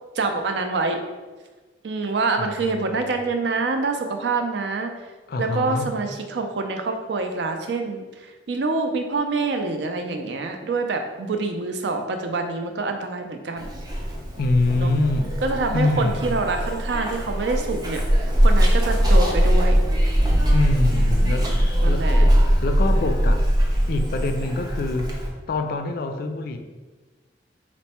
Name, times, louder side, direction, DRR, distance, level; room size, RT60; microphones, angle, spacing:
voice 1, 0.2-1.0 1.8-4.9 5.4-13.7 14.7-14.9 15.4-19.8 21.0-22.3, right 3 dB, 70° right, 5 dB, 0.4 m, -26 dB
voice 2, 2.4-3.1 5.3-5.9 14.4-15.3 15.7-16.4 20.5-23.4 23.9-26.6, left 2 dB, 55° left, 6 dB, 0.4 m, -25 dB
Zipper (clothing), 13.6-25.3, equal, 20° right, 0.6 m, -21 dB
4.3 x 2.1 x 4.2 m, 1.3 s
head